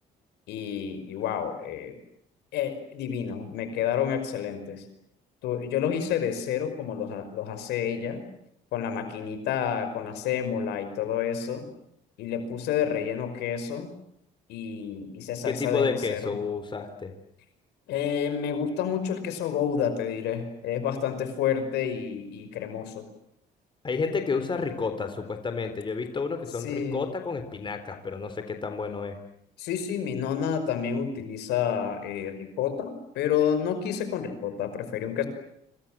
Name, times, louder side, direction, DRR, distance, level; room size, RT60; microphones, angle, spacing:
voice 1, 0.5-1.9 2.5-4.8 5.4-8.2 8.7-11.7 12.2-13.9 14.5-16.3 17.9-23.1 26.6-27.0 29.6-35.2, left 8 dB, 80° left, 9 dB, 5.5 m, -29 dB
voice 2, 15.4-17.1 23.8-29.2, left 4 dB, 30° left, 7 dB, 3.9 m, -30 dB
27.0 x 26.5 x 7.7 m, 0.74 s
cardioid pair, 110°, 17 cm